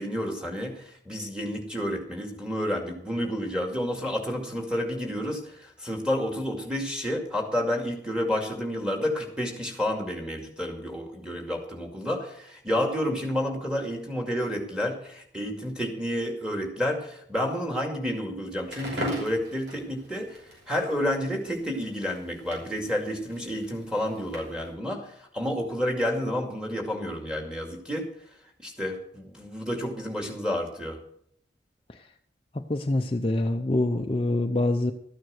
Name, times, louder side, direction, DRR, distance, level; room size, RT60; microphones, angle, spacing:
voice 1, 0.0-20.4 20.7-28.1 28.6-31.0, equal, 5° right, 2 dB, 2.2 m, -30 dB
Crackle, 18.6-24.7, right 1 dB, 85° right, 5.5 m, -41 dB
voice 2, 32.5-34.9, left 1 dB, 30° left, 4 dB, 0.6 m, -25 dB
13.0 x 9.3 x 6.4 m, 0.69 s
head